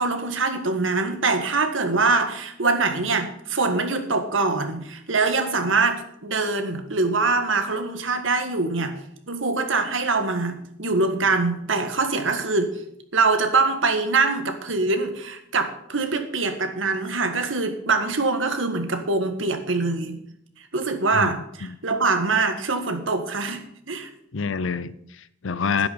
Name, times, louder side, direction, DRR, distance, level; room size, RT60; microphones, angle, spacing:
voice 1, 0.0-9.0 9.3-12.7 13.1-20.2 20.7-24.1, right 3 dB, 80° right, 7 dB, 1.7 m, -24 dB
voice 2, 24.3-25.9, left 5 dB, 80° left, 16 dB, 0.7 m, -27 dB
11.0 x 9.7 x 5.6 m, 0.75 s
head